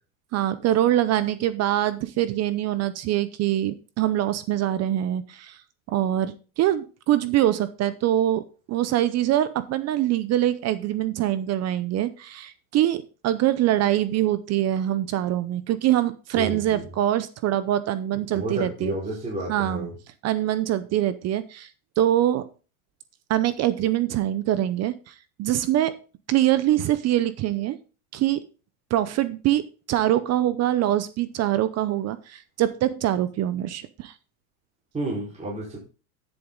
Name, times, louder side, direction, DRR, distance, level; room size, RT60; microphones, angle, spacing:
voice 1, 0.3-5.6 5.9-18.9 19.5-19.9 20.2-21.7 22.0-22.5 23.3-26.0 26.3-27.8 28.1-28.4 28.9-34.1, right 13 dB, 40° right, 14 dB, 0.7 m, -24 dB
voice 2, 16.3-16.8 18.3-19.9 34.9-35.8, right 1 dB, 15° right, -4 dB, 4.4 m, -31 dB
11.0 x 7.2 x 3.8 m, 0.35 s
supercardioid pair, 120°, 41 cm